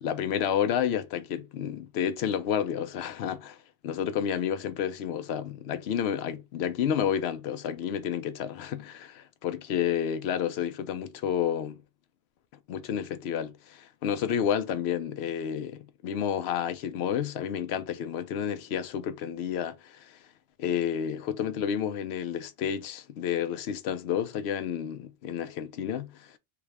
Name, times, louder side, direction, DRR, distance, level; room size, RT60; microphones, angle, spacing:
voice 1, 0.0-3.6 3.8-11.8 12.7-20.2 20.6-26.4, left 9 dB, 85° left, 0.8 m, -30 dB
3.4 x 2.3 x 3.2 m
omnidirectional pair, 1.0 m